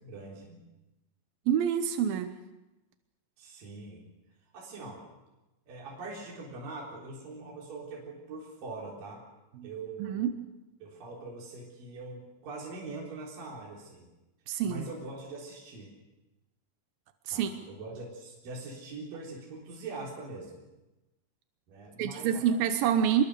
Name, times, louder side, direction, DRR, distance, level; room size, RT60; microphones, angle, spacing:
voice 1, 0.0-0.6 3.4-4.1 4.5-5.0 5.7-9.2 9.6-10.3 10.8-14.1 14.6-15.9 17.3-20.6 21.7-22.6, right 3 dB, 50° right, -3 dB, 5.2 m, -43 dB
voice 2, 1.5-2.3 9.6-9.7 10.0-10.4 14.5-14.8 17.3-17.5 22.0-23.2, right 8 dB, 75° right, 8 dB, 2.2 m, -27 dB
25.5 x 22.5 x 6.8 m, 1.0 s
omnidirectional pair, 5.4 m